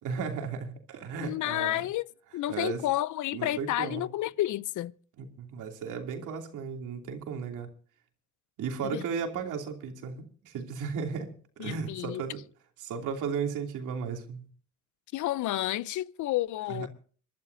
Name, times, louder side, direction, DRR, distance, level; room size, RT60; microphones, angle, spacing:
voice 1, 0.0-1.9 2.5-2.9 3.3-4.0 5.2-7.7 8.6-11.3 11.6-12.4 12.8-14.5 16.7-16.9, right 6 dB, 85° right, 2.9 m, -35 dB
voice 2, 1.2-2.1 2.3-4.9 8.8-9.0 11.6-12.2 15.1-16.9, left 14 dB, 75° left, 0.7 m, -30 dB
27.5 x 12.0 x 2.7 m
cardioid pair, 90°, 30 cm